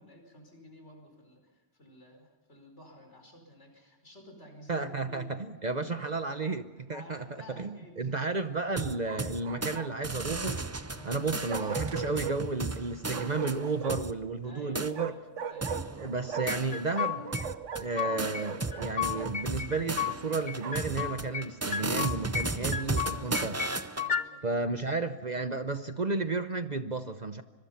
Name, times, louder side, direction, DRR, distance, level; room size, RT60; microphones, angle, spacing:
voice 1, 0.0-5.3 5.8-5.9 6.9-8.2 10.9-11.2 14.4-15.9 22.2-24.5, left 1 dB, 65° left, 3 dB, 5.4 m, -52 dB
voice 2, 4.7-7.2 7.6-10.7 11.0-15.1 16.0-17.3 17.8-23.6 24.4-27.4, right 3 dB, 40° right, 9 dB, 0.9 m, -32 dB
Bark, 6.0-6.6 9.0-10.1 11.5-12.4 13.1-14.2 14.9-16.7 16.9-19.3 20.0-20.9, right 6 dB, 80° right, 1.5 m, -39 dB
sound 1, 8.8-9.8 10.0-14.1 14.7-14.9 15.6-17.0 17.3-24.1, right 3 dB, 20° right, 0.5 m, -35 dB
sound 2, 16.5-17.4 17.7-18.4 18.7-20.2 20.5-21.5 21.7-22.5 22.7-24.2, left 8 dB, 40° left, 0.9 m, -33 dB
25.0 x 23.5 x 5.8 m, 1.3 s
omnidirectional pair, 1.3 m